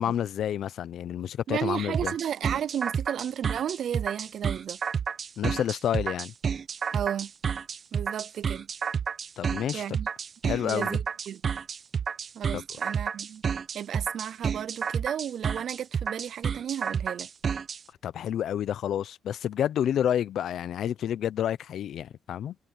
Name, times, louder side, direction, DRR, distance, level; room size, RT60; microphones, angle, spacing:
voice 1, 0.0-2.1 5.4-6.3 9.4-9.8 10.4-11.0 12.5-12.6 18.0-22.6, left 10 dB, 70° left, 0.7 m, -29 dB
voice 2, 1.5-4.8 6.9-7.3 7.9-8.7 9.7-10.1 10.5-11.4 12.3-13.4 13.7-17.3, right 9 dB, 65° right, 0.5 m, -33 dB
sound 1, 1.9-17.8, right 6 dB, 50° right, 1.3 m, -30 dB
cardioid pair, 90°, 0 cm